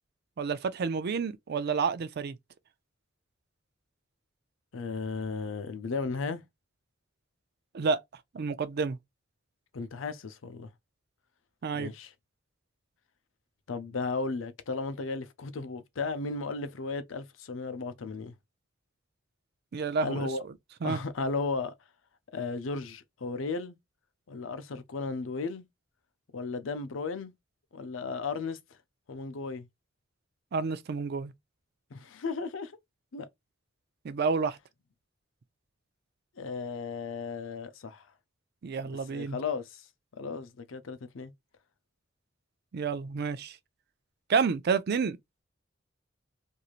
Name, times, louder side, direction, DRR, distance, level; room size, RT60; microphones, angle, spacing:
voice 1, 0.4-2.4 7.7-8.0 8.3-9.0 11.6-11.9 19.7-20.3 20.8-21.0 30.5-31.3 34.0-34.6 38.6-39.4 42.7-43.6 44.3-45.2, right 5 dB, 55° right, 0.4 m, -29 dB
voice 2, 4.7-6.4 9.7-10.7 11.8-12.1 13.7-18.3 20.0-20.4 20.8-21.7 22.3-23.8 24.3-25.7 26.3-27.3 27.7-28.6 29.1-29.7 31.9-32.7 33.1-33.3 36.4-38.0 38.9-39.8 40.2-41.3, left 4 dB, 75° left, 0.6 m, -35 dB
3.0 x 2.6 x 2.4 m
head